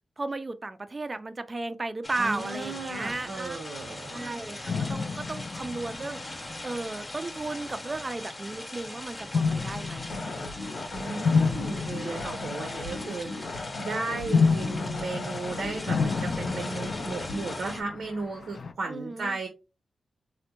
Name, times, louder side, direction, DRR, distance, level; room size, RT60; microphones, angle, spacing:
voice 1, 0.2-3.6 4.1-6.2 6.6-10.2 18.9-19.4, right 2 dB, 30° right, 0.3 m, -35 dB
sound 1, 2.0-17.8, left 1 dB, 20° left, 0.7 m, -41 dB
voice 2, 2.2-4.3 10.9-19.5, right 3 dB, 90° right, 0.7 m, -35 dB
sound 2, 4.7-6.9 7.6-8.0 9.3-13.5 14.3-18.7, left 5 dB, 55° left, 0.3 m, -30 dB
sound 3, 10.0-17.6, left 2 dB, 85° left, 0.6 m, -37 dB
4.1 x 2.1 x 2.9 m
wide cardioid pair, 110°, 0 cm